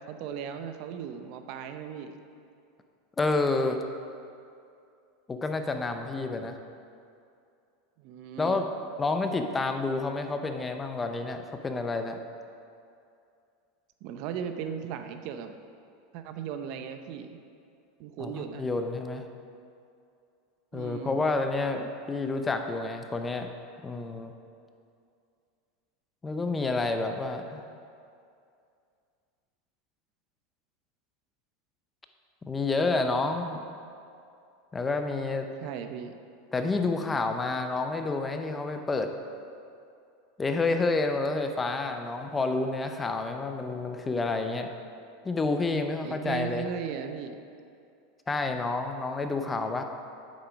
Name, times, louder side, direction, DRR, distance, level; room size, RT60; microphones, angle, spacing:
voice 1, 0.1-2.2 8.0-8.6 14.0-15.5 16.1-17.4 18.0-18.7 20.7-21.2 35.6-36.2 46.0-47.4, right 8 dB, 55° right, 7 dB, 0.7 m, -37 dB
voice 2, 3.2-3.8 5.3-6.6 8.4-8.6 9.0-12.2 18.2-19.2 20.7-23.5 23.8-24.3 26.2-27.6 32.4-33.6 34.7-35.5 36.5-39.1 40.4-44.7 45.2-46.7 48.3-49.8, left 3 dB, 15° left, 6 dB, 0.6 m, -29 dB
8.8 x 7.4 x 5.1 m, 2.5 s
supercardioid pair, 130°, 0 cm